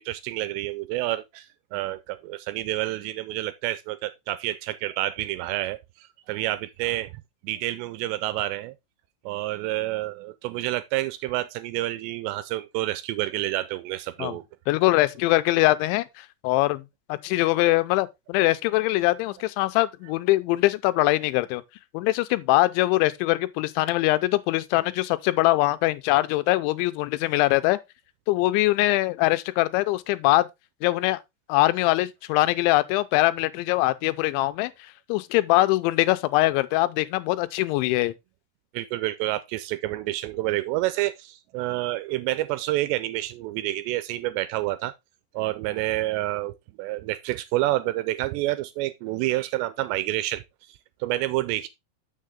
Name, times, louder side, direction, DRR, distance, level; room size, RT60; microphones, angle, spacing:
voice 1, 0.0-1.5 1.7-7.1 7.4-8.7 9.3-14.4 38.7-44.9 45.3-51.7, right 16 dB, 85° right, 2.6 m, -29 dB
voice 2, 14.7-16.8 17.1-21.6 21.9-27.8 28.3-30.5 30.8-31.2 31.5-34.7 35.1-38.1, left 18 dB, 85° left, 2.9 m, -22 dB
7.2 x 6.6 x 3.6 m
omnidirectional pair, 5.3 m